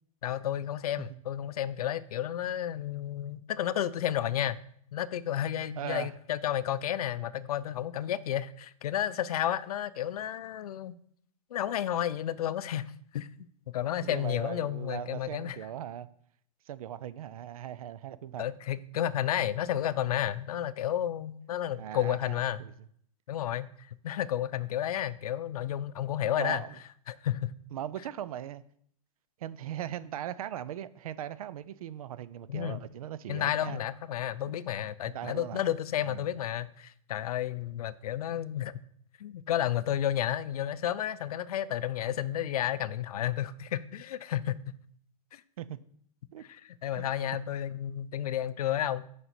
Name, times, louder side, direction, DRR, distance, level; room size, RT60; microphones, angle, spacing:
voice 1, 0.2-4.6 4.9-11.0 11.5-13.5 13.7-15.6 18.4-22.6 23.3-26.6 27.1-27.5 32.5-32.8 33.3-38.8 39.2-44.8 45.3-45.4 46.4-49.1, left 11 dB, 80° left, 0.5 m, -32 dB
voice 2, 5.8-6.1 14.0-16.1 16.7-18.4 21.8-22.7 26.4-26.7 27.7-28.6 29.4-33.8 35.1-35.6 36.0-36.3 45.6-45.8 46.3-46.4 46.9-47.1, right 11 dB, 70° right, 0.5 m, -39 dB
6.8 x 5.1 x 4.3 m
hypercardioid pair, 160°, 19 cm